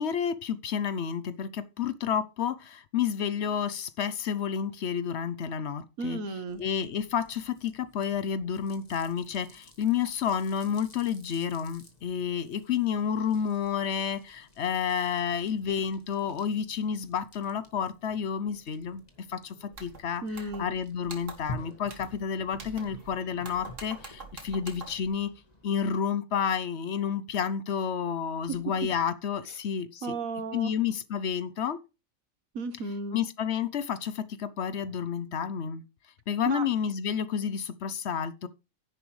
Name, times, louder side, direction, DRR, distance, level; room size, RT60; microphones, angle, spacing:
voice 1, 0.0-6.2 6.6-19.0 19.3-25.3 25.6-30.1 30.5-31.8 33.1-35.8 36.3-38.5, left 7 dB, 60° left, 0.9 m, -30 dB
voice 2, 6.0-6.6 20.2-20.7 28.5-28.6 30.0-30.7 32.5-33.2 36.5-36.7, right 3 dB, 85° right, 1.5 m, -34 dB
sound 1, 6.5-25.9, left 1 dB, 30° left, 1.9 m, -50 dB
sound 2, 19.7-20.0 20.3-20.8 21.0-21.5 21.9-22.2 22.5-23.1 23.4-25.1, right 3 dB, 65° right, 2.1 m, -45 dB
10.0 x 10.0 x 3.2 m
omnidirectional pair, 1.4 m